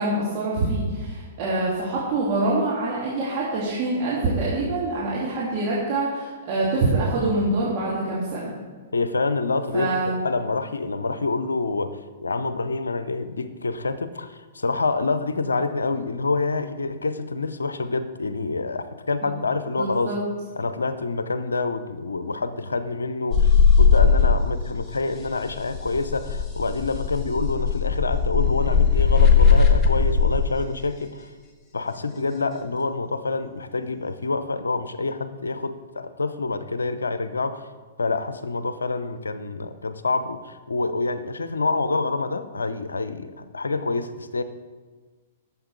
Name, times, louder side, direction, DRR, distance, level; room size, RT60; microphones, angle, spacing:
voice 1, 0.0-8.5 9.7-10.2 19.7-20.2, right 2 dB, 40° right, -7 dB, 2.5 m, -25 dB
voice 2, 8.9-20.1 20.6-31.3 31.7-37.6 38.0-44.4, left 3 dB, 80° left, 12 dB, 0.7 m, -27 dB
sound 1, 23.3-24.7 25.0-30.4 32.2-32.6, left 6 dB, 20° left, 1.5 m, -18 dB
12.0 x 7.2 x 4.8 m, 1.4 s
figure-of-eight pair, 110°, 0 cm